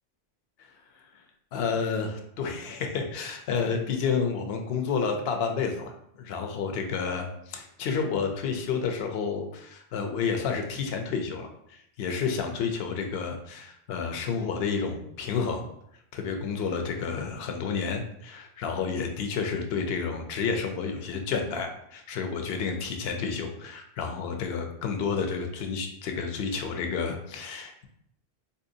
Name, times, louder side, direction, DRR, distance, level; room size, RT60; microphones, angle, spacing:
voice 1, 1.5-15.6 16.1-27.9, left 5 dB, 70° left, 5 dB, 0.8 m, -30 dB
4.2 x 2.7 x 2.6 m, 0.74 s
omnidirectional pair, 1.1 m